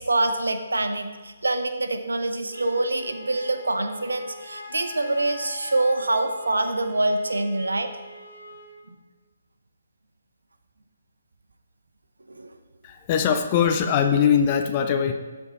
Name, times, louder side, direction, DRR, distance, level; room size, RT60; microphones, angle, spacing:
voice 1, 0.0-7.9 8.9-9.0 12.4-12.5, right 2 dB, 70° right, 7 dB, 0.9 m, -25 dB
Wind instrument woodwind instrument, 2.5-8.8, left 1 dB, 65° left, 1.8 m, -42 dB
voice 2, 12.8-15.1, left 8 dB, 30° left, 5 dB, 0.6 m, -21 dB
13.5 x 4.6 x 4.0 m, 1.3 s
figure-of-eight pair, 135°, 0 cm